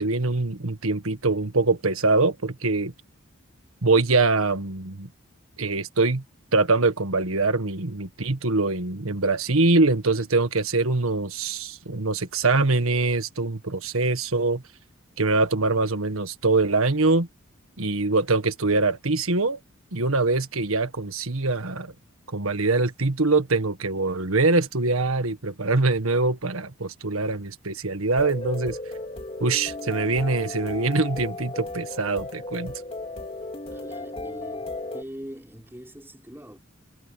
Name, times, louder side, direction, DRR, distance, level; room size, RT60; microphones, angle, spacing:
voice 1, 0.0-2.9 3.8-5.1 5.6-6.2 6.5-14.6 15.2-17.3 17.8-19.6 19.9-21.9 22.3-28.8 29.4-32.7, right 3 dB, 75° right, 1.7 m, -23 dB
sound 1, 28.2-35.0, left 2 dB, 30° left, 4.1 m, -35 dB
voice 2, 33.7-36.6, equal, 10° right, 6.0 m, -42 dB
head